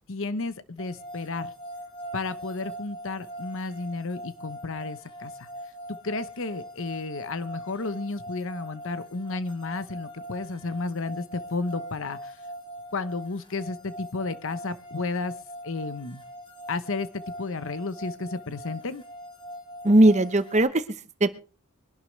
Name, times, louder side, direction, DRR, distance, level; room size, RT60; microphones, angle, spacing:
voice 1, 0.1-1.5 2.1-5.5 5.9-12.4 12.9-15.3 15.6-16.2 16.7-19.0, left 3 dB, 65° left, 13 dB, 1.0 m, -32 dB
sound 1, 0.8-20.6, equal, 25° left, 2.6 m, -42 dB
voice 2, 19.8-21.4, right 1 dB, 35° right, 12 dB, 1.0 m, -20 dB
23.5 x 11.5 x 3.3 m, 0.34 s
head